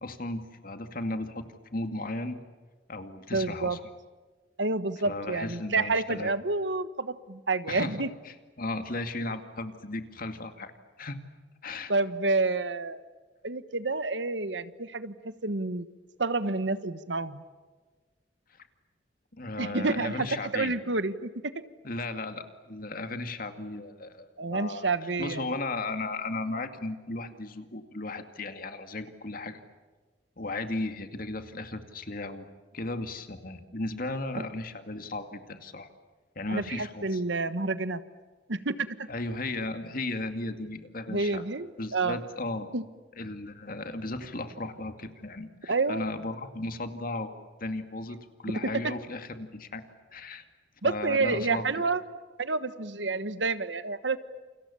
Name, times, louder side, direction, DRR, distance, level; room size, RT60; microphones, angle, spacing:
voice 1, 0.0-2.4 2.9-3.8 5.1-6.3 7.7-10.7 11.0-11.2 11.6-11.9 18.6-18.7 19.4-20.7 21.8-24.9 25.2-29.6 30.4-32.5 32.7-35.9 36.4-37.2 39.1-41.4 41.8-42.7 43.2-47.3 47.6-49.8 50.1-50.4 50.8-51.7, left 2 dB, 50° left, 8 dB, 2.3 m, -35 dB
voice 2, 3.3-3.8 4.6-8.1 11.9-13.0 13.4-15.9 16.2-17.4 19.6-21.3 24.4-25.5 34.4-34.5 36.5-38.0 38.5-39.1 41.1-42.2 42.7-42.8 45.7-46.1 48.5-48.9 50.8-52.0 52.4-54.2, right 3 dB, 80° right, 13 dB, 1.4 m, -29 dB
29.0 x 29.0 x 7.1 m, 1.3 s
head